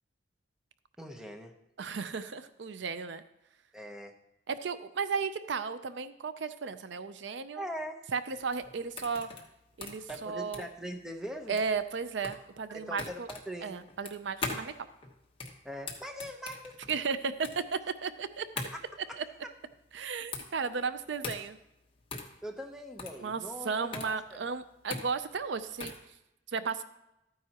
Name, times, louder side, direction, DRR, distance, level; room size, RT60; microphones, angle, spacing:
voice 1, 1.0-1.5 3.7-4.1 7.6-8.1 10.1-11.6 12.7-13.8 15.6-16.8 18.7-18.8 19.1-19.2 22.4-24.4, equal, 5° right, 4 dB, 0.8 m, -41 dB
voice 2, 1.8-3.2 4.5-7.6 8.1-9.3 9.8-10.7 11.5-13.3 13.6-14.9 16.9-18.5 19.2-19.3 19.9-21.6 23.2-25.9 26.5-26.8, right 5 dB, 75° right, 12 dB, 0.5 m, -34 dB
sound 1, 8.3-26.1, left 3 dB, 30° left, 1.2 m, -42 dB
13.0 x 9.5 x 2.9 m, 0.87 s
head